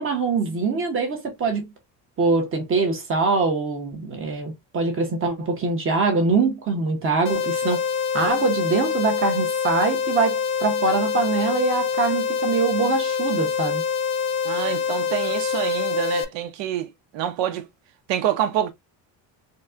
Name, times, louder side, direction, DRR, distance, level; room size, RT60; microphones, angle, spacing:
voice 1, 0.0-1.7 2.2-7.8 8.1-13.8, right 4 dB, 30° right, 1.0 m, -23 dB
sound 1, 7.2-16.2, left 6 dB, 30° left, 0.4 m, -25 dB
voice 2, 14.4-16.9 17.1-17.6 18.1-18.7, right 11 dB, 75° right, 0.8 m, -26 dB
4.1 x 2.1 x 2.4 m
cardioid pair, 170°, 44 cm